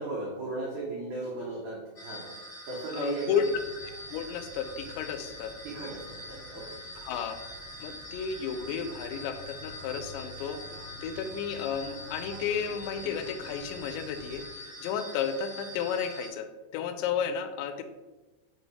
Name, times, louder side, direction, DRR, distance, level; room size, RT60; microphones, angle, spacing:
voice 1, 0.0-2.3 2.7-3.5 5.6-6.7, right 2 dB, 80° right, -5 dB, 1.7 m, -36 dB
sound 1, 1.9-16.3, equal, 40° left, 1.4 m, -44 dB
voice 2, 2.9-3.6 4.1-5.6 7.0-7.4 7.8-10.6 11.0-17.8, left 7 dB, 85° left, 9 dB, 2.9 m, -33 dB
sound 2, 3.4-14.5, equal, 55° right, 1.3 m, -49 dB
6.4 x 3.2 x 5.4 m, 1.1 s
omnidirectional pair, 5.1 m